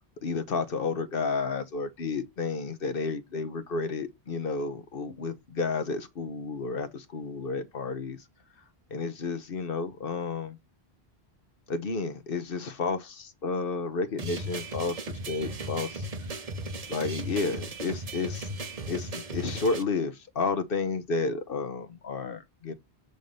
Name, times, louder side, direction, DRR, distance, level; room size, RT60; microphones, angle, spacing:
voice 1, 0.2-8.2 8.9-10.6 11.7-16.1 16.9-18.5 18.9-22.7, left 4 dB, 60° left, 1.1 m, -31 dB
sound 1, 14.2-19.8, right 1 dB, 40° right, 0.9 m, -36 dB
7.9 x 3.7 x 5.1 m
omnidirectional pair, 1.1 m